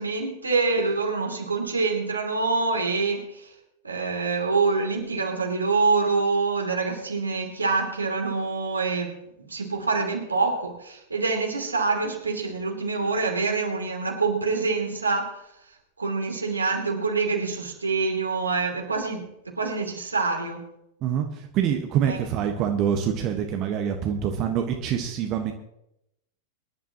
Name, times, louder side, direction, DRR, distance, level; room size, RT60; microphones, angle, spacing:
voice 1, 0.0-3.5 3.8-9.2 9.5-15.4 16.0-20.6 22.1-22.2, right 4 dB, 80° right, 1 dB, 3.0 m, -26 dB
voice 2, 21.0-25.5, right 8 dB, 35° right, 4 dB, 1.4 m, -25 dB
23.5 x 11.0 x 3.0 m, 0.81 s
figure-of-eight pair, 90°, 0 cm